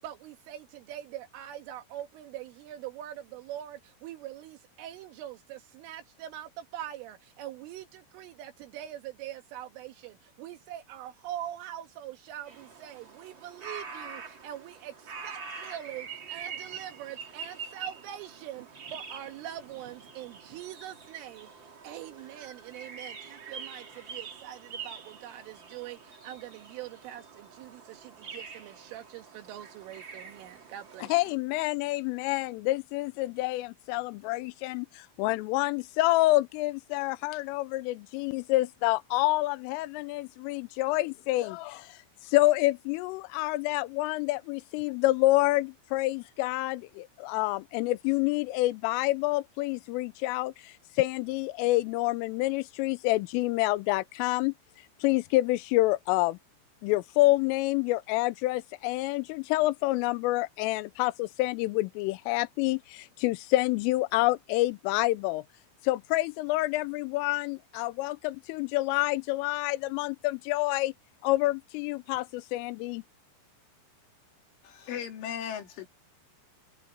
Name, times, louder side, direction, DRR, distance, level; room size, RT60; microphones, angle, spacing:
voice 1, 0.0-21.5 21.8-27.2 27.6-31.2, right 12 dB, 80° right, 4.0 m, -43 dB
sound 1, 12.5-31.3, right 5 dB, 40° right, 1.8 m, -45 dB
voice 2, 31.1-54.5 55.0-56.4 56.8-65.4 65.8-70.9 71.2-73.0, left 19 dB, 90° left, 3.3 m, -28 dB
voice 3, 74.6-75.9, left 9 dB, 75° left, 5.1 m, -37 dB
omnidirectional pair, 5.7 m